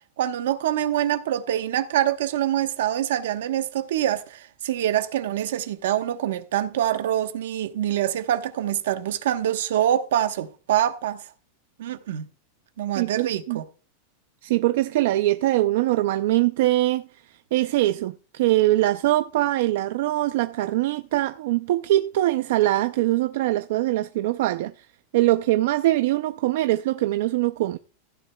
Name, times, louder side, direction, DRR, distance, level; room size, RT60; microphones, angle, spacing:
voice 1, 0.2-11.3 11.8-12.3 12.8-13.6, right 11 dB, 70° right, 1.1 m, -25 dB
voice 2, 13.0-13.6 14.4-17.1 17.5-24.9 25.1-27.8, right 16 dB, 55° right, 0.4 m, -22 dB
15.5 x 10.0 x 2.3 m
supercardioid pair, 180°, 0 cm